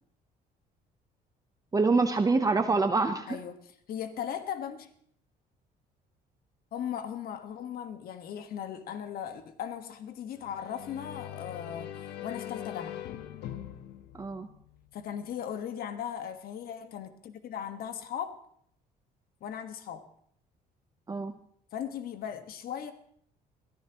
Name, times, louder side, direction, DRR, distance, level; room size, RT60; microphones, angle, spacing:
voice 1, 1.7-3.4 14.1-14.5 21.1-21.3, right 3 dB, 20° right, 7 dB, 0.9 m, -26 dB
voice 2, 3.3-4.9 6.7-13.0 14.9-18.4 19.4-20.0 21.7-22.9, left 9 dB, 60° left, 8 dB, 1.6 m, -38 dB
sound 1, 10.4-15.1, left 12 dB, 80° left, 1.1 m, -42 dB
22.0 x 14.5 x 3.0 m, 0.65 s
cardioid pair, 110°, 17 cm